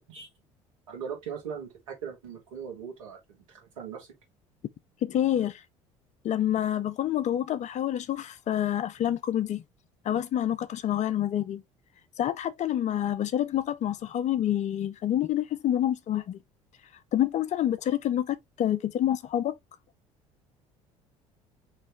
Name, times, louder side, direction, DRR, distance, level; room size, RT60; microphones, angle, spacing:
voice 1, 0.9-4.1, right 7 dB, 85° right, 2.2 m, -39 dB
voice 2, 5.0-5.6 6.2-9.6 10.0-11.6 12.2-16.4 17.1-19.6, left 11 dB, 45° left, 0.6 m, -27 dB
4.1 x 3.2 x 3.3 m
hypercardioid pair, 65°, 16 cm